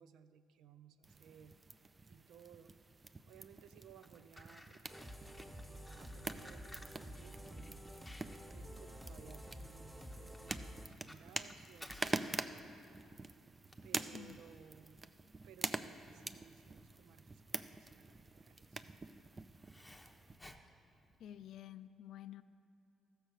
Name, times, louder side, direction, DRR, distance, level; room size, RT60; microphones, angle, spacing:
voice 1, 0.0-1.6 2.1-2.8 3.3-5.0 5.7-7.9 8.5-12.4 13.8-15.0 15.4-18.8, right 8 dB, 85° right, 11 dB, 0.5 m, -60 dB
sound 1, 1.0-20.4, right 3 dB, 25° right, 0.4 m, -46 dB
Fire, 3.8-21.6, left 1 dB, 10° left, 0.8 m, -59 dB
sound 2, 4.9-10.9, equal, 10° right, 1.3 m, -50 dB
voice 2, 21.2-22.4, left 11 dB, 75° left, 13 dB, 0.4 m, -50 dB
14.0 x 6.6 x 6.3 m, 2.9 s
cardioid pair, 90°, 0 cm